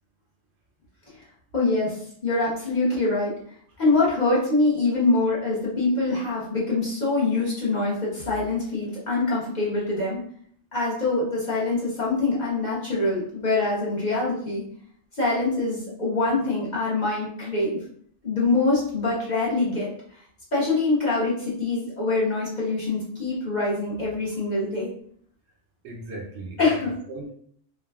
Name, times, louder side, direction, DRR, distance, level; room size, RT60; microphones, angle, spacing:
voice 1, 1.5-3.3 3.8-10.2 10.7-14.6 15.2-17.8 18.2-19.9 20.5-24.9 26.6-26.9, left 3 dB, 40° left, -6 dB, 0.8 m, -24 dB
voice 2, 25.8-27.3, right 2 dB, 65° right, 0 dB, 0.8 m, -37 dB
3.3 x 2.1 x 2.3 m, 0.62 s
omnidirectional pair, 1.3 m